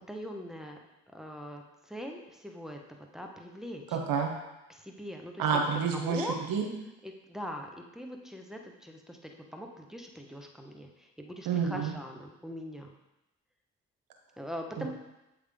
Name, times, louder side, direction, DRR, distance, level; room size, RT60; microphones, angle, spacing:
voice 1, 0.1-0.8 1.1-4.0 4.7-5.4 5.9-6.4 7.0-12.9 14.4-14.9, equal, ahead, 2 dB, 1.0 m, -42 dB
voice 2, 3.9-4.3 5.4-6.7 11.5-11.9 14.8-14.9, right 6 dB, 75° right, 2 dB, 0.9 m, -29 dB
7.9 x 3.6 x 3.5 m, 0.95 s
supercardioid pair, 45°, 35 cm